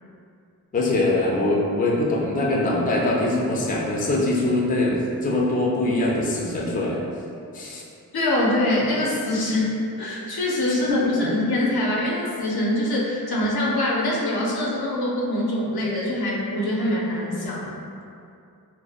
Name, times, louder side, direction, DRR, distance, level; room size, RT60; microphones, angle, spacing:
voice 1, 0.7-7.0 7.5-7.8 10.9-11.3, left 2 dB, 25° left, -3 dB, 0.4 m, -23 dB
voice 2, 8.1-17.8, left 1 dB, 80° left, -4 dB, 0.6 m, -24 dB
2.6 x 2.1 x 2.4 m, 2.5 s
wide cardioid pair, 60°, 37 cm